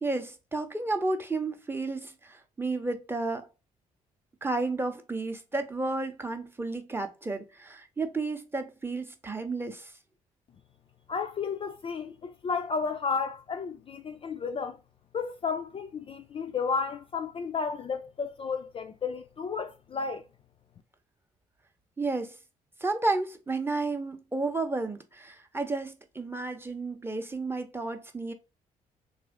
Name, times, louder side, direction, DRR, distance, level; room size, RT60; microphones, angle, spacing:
voice 1, 0.0-3.5 4.4-9.9 22.0-22.4 22.8-28.3, right 3 dB, 10° right, 0.6 m, -32 dB
voice 2, 11.1-14.8 15.1-20.2, left 5 dB, 30° left, 0.4 m, -32 dB
3.0 x 2.5 x 3.6 m
figure-of-eight pair, 45°, 18 cm